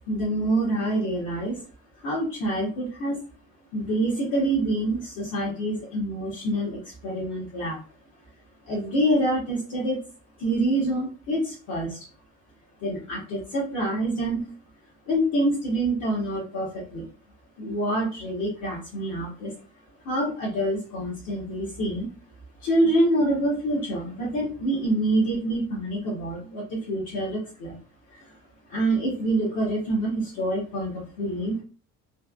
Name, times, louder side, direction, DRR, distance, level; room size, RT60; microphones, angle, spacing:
voice 1, 0.1-1.6 2.0-3.2 3.7-7.8 8.7-10.0 10.4-12.1 12.8-14.5 15.1-17.1 17.6-19.5 20.0-22.1 22.6-27.8 28.1-28.2 28.7-31.6, right 1 dB, 85° left, -6 dB, 1.1 m, -26 dB
3.2 x 2.1 x 2.3 m, 0.39 s
cardioid pair, 115°, 29 cm